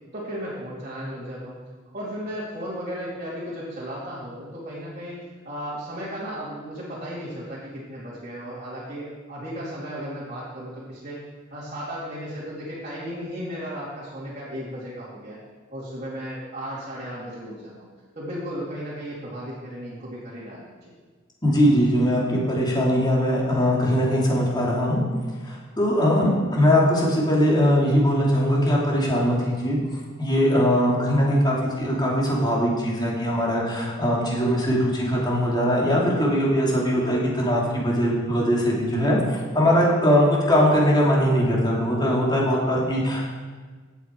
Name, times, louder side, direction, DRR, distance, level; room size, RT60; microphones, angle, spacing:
voice 1, 0.1-1.6 1.9-5.2 5.4-11.2 11.5-15.4 15.7-17.9 18.2-20.9 36.9-37.2, equal, 35° right, -8 dB, 2.7 m, -35 dB
voice 2, 21.4-25.0 25.4-29.8 30.2-43.3, equal, 20° left, -4 dB, 3.0 m, -21 dB
16.0 x 8.2 x 4.7 m, 1.4 s
head